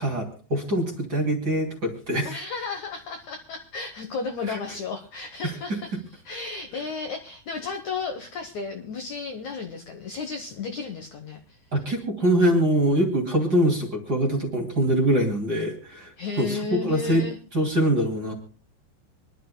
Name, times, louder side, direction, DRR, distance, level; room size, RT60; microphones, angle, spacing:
voice 1, 0.0-2.3 4.5-4.6 5.4-5.5 11.7-17.2 17.5-18.3, right 1 dB, 30° right, 2 dB, 2.2 m, -24 dB
voice 2, 2.2-11.6 16.2-17.4, left 4 dB, 85° left, 5 dB, 1.6 m, -33 dB
26.0 x 11.5 x 2.2 m, 0.38 s
omnidirectional pair, 5.0 m